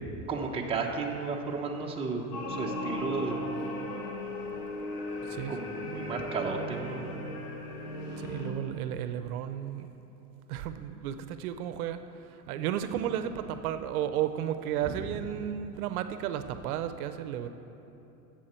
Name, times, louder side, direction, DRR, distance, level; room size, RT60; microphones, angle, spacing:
voice 1, 0.3-3.4 4.9-7.2, right 4 dB, 10° right, 0 dB, 0.7 m, -34 dB
sound 1, 2.3-8.5, left 1 dB, 75° left, 2.5 m, -36 dB
voice 2, 8.2-9.9 10.5-12.0 12.3-17.5, right 10 dB, 70° right, 10 dB, 0.6 m, -33 dB
13.5 x 7.6 x 4.3 m, 2.9 s
supercardioid pair, 140°, 46 cm